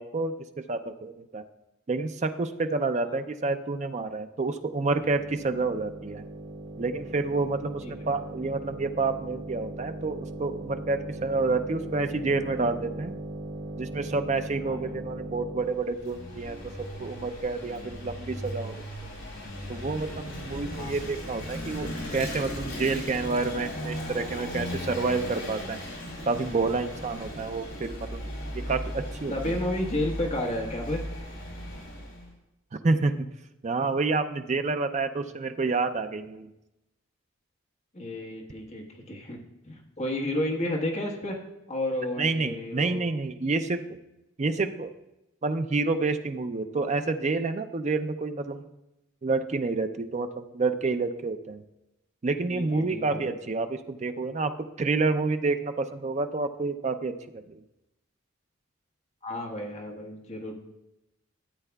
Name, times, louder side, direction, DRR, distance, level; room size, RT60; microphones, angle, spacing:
voice 1, 0.0-1.4 1.9-6.2 6.8-13.1 13.8-16.6 17.0-18.8 19.7-25.8 26.3-28.3 28.5-29.5 32.8-33.3 33.6-36.5 42.2-44.0 44.4-44.9 45.4-48.6 49.2-51.6 52.2-57.6, right 3 dB, 30° right, 8 dB, 0.4 m, -29 dB
sound 1, 4.7-15.9, right 1 dB, 85° right, 2.2 m, -39 dB
voice 2, 14.6-14.9 20.7-21.0 29.3-31.0 37.9-39.4 39.6-41.4 41.7-43.2 52.5-53.3 59.2-60.5, left 1 dB, 35° left, 0 dB, 1.2 m, -32 dB
Vehicle / Engine, 15.7-32.3, equal, 65° left, 2.6 m, -37 dB
13.5 x 8.1 x 2.3 m, 0.93 s
head